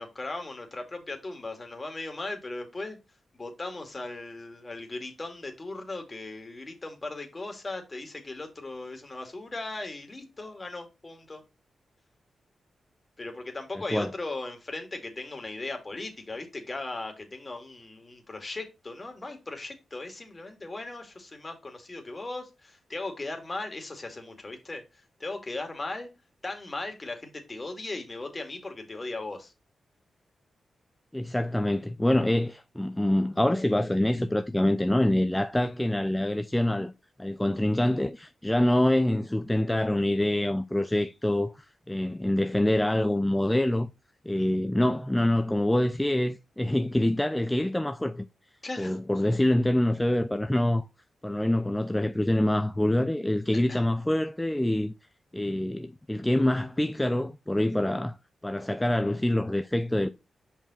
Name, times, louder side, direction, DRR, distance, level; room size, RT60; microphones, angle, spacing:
voice 1, 0.0-3.0 3.3-11.4 13.2-26.1 26.4-29.5 44.4-44.5 48.6-49.0 53.7-53.8, left 2 dB, 35° left, 2.3 m, -38 dB
voice 2, 31.1-36.9 37.2-43.9 44.3-48.3 48.8-50.8 51.2-54.9 55.3-58.2 58.4-60.1, left 1 dB, 10° left, 0.5 m, -25 dB
5.5 x 4.8 x 4.3 m
cardioid pair, 55°, 0 cm